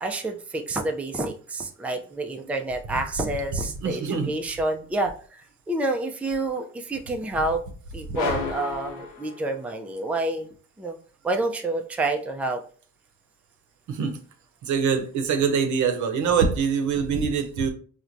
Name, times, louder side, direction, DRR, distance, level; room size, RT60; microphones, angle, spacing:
voice 1, 0.0-7.6 7.9-10.5 10.8-11.0 11.2-12.6, right 2 dB, 5° right, 4 dB, 0.4 m, -28 dB
voice 2, 3.8-4.3 8.1-8.2 13.9-14.2 14.6-17.7, right 6 dB, 75° right, 7 dB, 0.7 m, -24 dB
sound 1, 8.1-9.9, left 5 dB, 85° left, 0.6 m, -32 dB
4.4 x 2.1 x 2.5 m, 0.43 s
cardioid pair, 90°, 30 cm